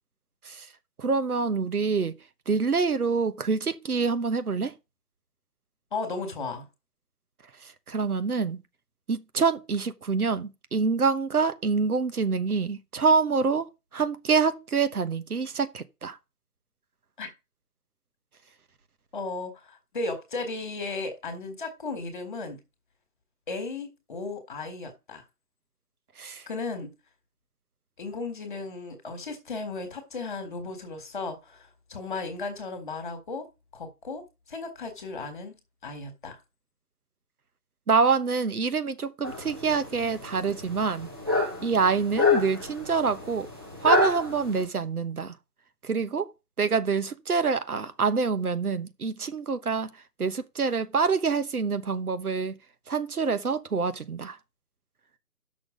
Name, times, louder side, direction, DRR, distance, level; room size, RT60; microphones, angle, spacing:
voice 1, 1.0-2.2 2.5-4.7 7.6-8.6 9.1-13.7 13.9-16.2 26.2-26.4 37.9-41.1 41.6-43.5 43.8-45.3 45.8-46.3 46.6-49.9 50.2-52.6 52.9-54.4, right 5 dB, 70° right, 1.2 m, -26 dB
voice 2, 5.9-6.7 17.2-17.3 19.1-22.6 23.5-25.2 26.5-26.9 28.0-33.5 33.7-34.2 34.5-35.6 35.8-36.4, left 3 dB, 30° left, 1.9 m, -35 dB
sound 1, 39.2-44.7, left 3 dB, 15° right, 0.8 m, -28 dB
8.0 x 6.3 x 5.0 m
figure-of-eight pair, 165°, 46 cm